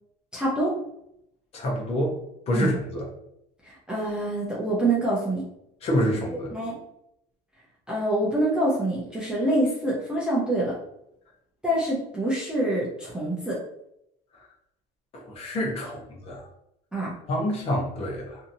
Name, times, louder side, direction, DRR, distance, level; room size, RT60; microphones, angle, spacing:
voice 1, 0.3-0.8 2.5-2.7 3.6-5.4 6.5-6.7 7.9-10.8 11.6-13.6 16.9-17.1, right 1 dB, 5° right, -7 dB, 0.5 m, -26 dB
voice 2, 1.5-2.2 2.5-3.1 5.8-6.5 15.1-16.4 17.3-18.4, equal, 35° left, -1 dB, 0.7 m, -27 dB
2.8 x 2.6 x 2.6 m, 0.78 s
cardioid pair, 165°, 19 cm